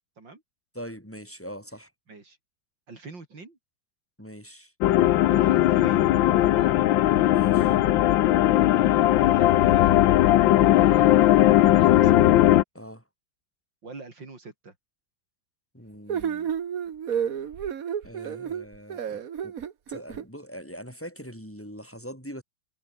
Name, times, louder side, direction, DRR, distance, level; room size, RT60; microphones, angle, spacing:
voice 1, 0.7-1.9 4.2-4.7 7.3-7.7 12.7-13.0 15.7-16.5 18.0-19.5 19.9-22.4, equal, 5° left, 6.9 m, -42 dB
voice 2, 2.9-3.6 5.2-6.8 8.7-10.1 10.6-12.2 13.8-14.7, right 3 dB, 75° right, 4.8 m, -45 dB
sound 1, 4.8-12.6, left 14 dB, 90° left, 1.5 m, -18 dB
sound 2, 16.1-20.2, right 8 dB, 50° right, 1.5 m, -31 dB
omnidirectional pair, 2.0 m